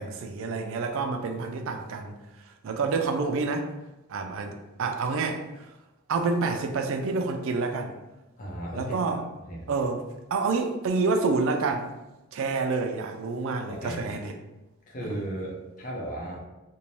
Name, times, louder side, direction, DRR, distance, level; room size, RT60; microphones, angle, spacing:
voice 1, 0.0-2.2 2.6-3.7 4.1-5.7 6.1-7.9 8.7-9.2 9.7-10.0 10.3-11.9 12.3-14.3 15.0-15.3, right 4 dB, 65° right, 5 dB, 0.3 m, -28 dB
voice 2, 8.4-8.9 9.5-9.8 13.7-14.2 14.9-16.5, right 1 dB, 40° left, -4 dB, 0.7 m, -35 dB
2.6 x 2.1 x 3.1 m, 1.0 s
head